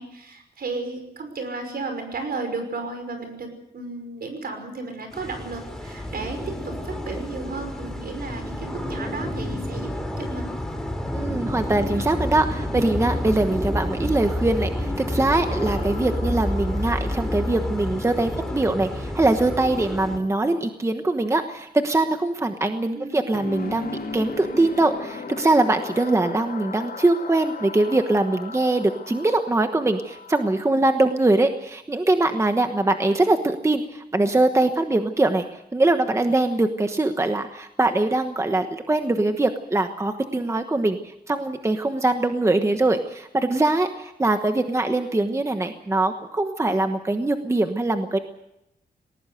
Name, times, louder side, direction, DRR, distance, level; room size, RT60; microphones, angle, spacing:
voice 1, 0.0-3.5 3.7-9.9 10.2-10.6 22.9-23.2, right 3 dB, 70° right, 6 dB, 5.7 m, -33 dB
sound 1, 5.1-20.2, left 1 dB, 5° left, 3.0 m, -29 dB
voice 2, 11.1-48.2, right 2 dB, 15° right, 6 dB, 1.2 m, -22 dB
sound 2, 15.3-19.5 23.3-31.6, left 4 dB, 75° left, 4.1 m, -38 dB
19.5 x 19.0 x 8.0 m, 0.83 s
wide cardioid pair, 160°, 16 cm